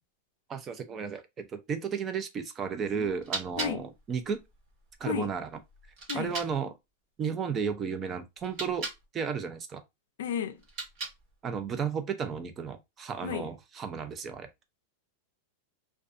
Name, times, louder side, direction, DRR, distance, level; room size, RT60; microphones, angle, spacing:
voice 1, 0.5-4.4 5.0-5.5 6.1-6.7 7.2-8.9 9.1-9.8 11.4-14.5, right 6 dB, 25° right, 0.4 m, -33 dB
sound 1, 3.0-6.6 8.4-9.1 10.6-11.4, right 3 dB, 45° right, 1.2 m, -40 dB
voice 2, 10.2-10.6 13.2-13.5, left 8 dB, 80° left, 0.4 m, -33 dB
2.5 x 2.2 x 2.4 m
supercardioid pair, 140°, 0 cm